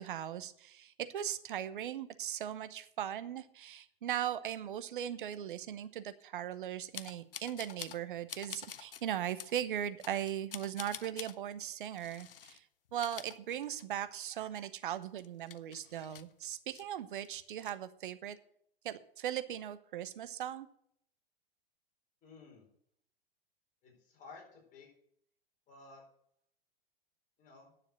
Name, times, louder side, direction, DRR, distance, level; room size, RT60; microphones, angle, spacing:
voice 1, 0.0-12.6 12.9-18.4 18.8-20.7, right 10 dB, 60° right, 13 dB, 0.9 m, -39 dB
sound 1, 6.9-8.0 8.3-9.0 9.4-9.5 10.0-11.4 12.0-12.6 12.9-14.1 14.4-14.5 14.9-16.8 17.2-17.7, left 9 dB, 65° left, 0.7 m, -47 dB
voice 2, 22.2-22.7 23.8-24.9 25.7-26.0 27.4-27.7, left 3 dB, 25° left, 0 dB, 4.4 m, -54 dB
10.0 x 7.1 x 7.9 m, 0.67 s
figure-of-eight pair, 95°, 29 cm